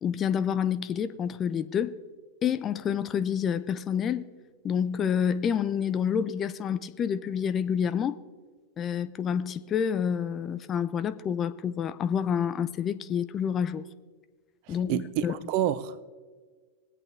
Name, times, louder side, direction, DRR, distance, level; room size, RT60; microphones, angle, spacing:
voice 1, 0.0-2.0 2.4-4.3 4.6-8.2 8.8-13.9 14.7-15.4, left 8 dB, 25° left, 0.5 m, -28 dB
voice 2, 14.7-16.0, right 11 dB, 45° right, 0.6 m, -29 dB
21.0 x 8.3 x 3.5 m
figure-of-eight pair, 90°, 0 cm